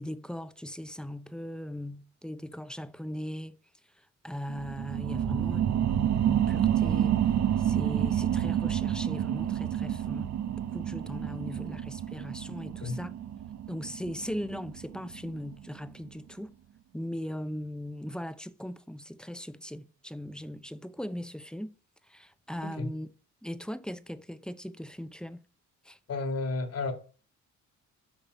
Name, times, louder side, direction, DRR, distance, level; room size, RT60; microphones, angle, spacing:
voice 1, 0.0-3.5 4.2-7.2 7.6-10.4 10.7-13.1 13.7-16.5 16.9-21.7 22.1-23.1 23.4-25.4 25.8-26.0, equal, 5° left, 0.7 m, -39 dB
sound 1, 4.5-15.6 16.1-16.2, right 10 dB, 65° right, 0.8 m, -29 dB
voice 2, 12.6-13.0 22.6-22.9 26.1-26.9, left 3 dB, 55° left, 2.2 m, -33 dB
7.4 x 5.3 x 6.8 m
cardioid pair, 90°, 30 cm